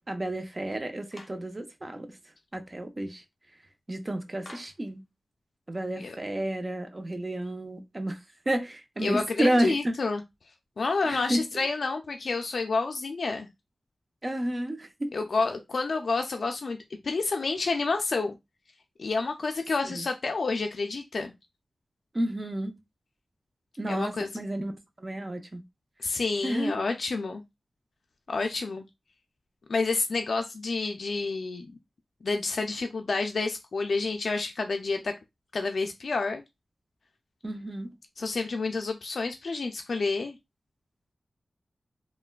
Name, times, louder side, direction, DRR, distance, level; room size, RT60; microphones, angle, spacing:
voice 1, 0.1-2.1 2.5-3.2 3.9-5.0 5.7-8.2 8.5-9.7 11.0-11.6 14.2-15.1 19.9-20.0 22.1-22.7 23.8-24.7 25.0-25.6 26.4-26.8 37.4-37.9, right 1 dB, 30° right, 0.5 m, -31 dB
Clapping, 1.1-1.5 4.4-4.9, left 2 dB, 35° left, 0.7 m, -48 dB
voice 2, 9.0-10.2 10.8-13.5 15.1-16.8 17.0-18.4 19.0-21.3 23.9-24.3 26.0-27.4 28.3-28.8 29.7-31.7 32.2-35.1 35.5-36.4 38.2-40.4, left 3 dB, 70° left, 0.3 m, -29 dB
3.3 x 2.1 x 2.2 m
wide cardioid pair, 110°, 0 cm